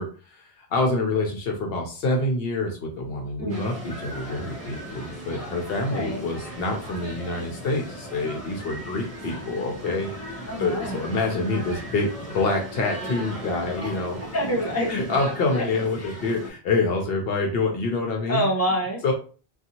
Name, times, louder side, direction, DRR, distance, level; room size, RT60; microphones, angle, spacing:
voice 1, 0.0-14.2 14.9-18.5 19.0-19.1, left 3 dB, 70° left, 2 dB, 0.8 m, -27 dB
voice 2, 3.4-3.7 5.9-6.2 10.5-11.0 13.8-13.9 14.3-14.9 16.0-16.1 18.3-19.0, equal, 15° left, -3 dB, 0.8 m, -26 dB
sound 1, 3.5-16.5, equal, 35° right, 0.9 m, -38 dB
2.6 x 2.3 x 2.8 m, 0.37 s
omnidirectional pair, 1.1 m